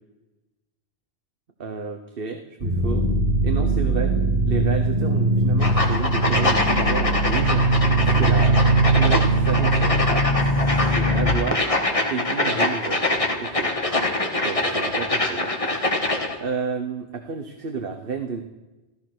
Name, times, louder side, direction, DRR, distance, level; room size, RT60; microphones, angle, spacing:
voice 1, 1.6-3.0 3.4-4.1 4.5-7.6 8.0-8.6 9.0-11.6 12.1-13.0 13.4-13.7 14.4-15.8 16.4-18.4, right 5 dB, 55° right, 5 dB, 1.2 m, -31 dB
sound 1, 2.6-11.3, right 2 dB, 35° right, 1.9 m, -21 dB
sound 2, 5.6-16.4, left 2 dB, 30° left, 1.7 m, -24 dB
14.5 x 14.0 x 6.1 m, 1.1 s
omnidirectional pair, 1.1 m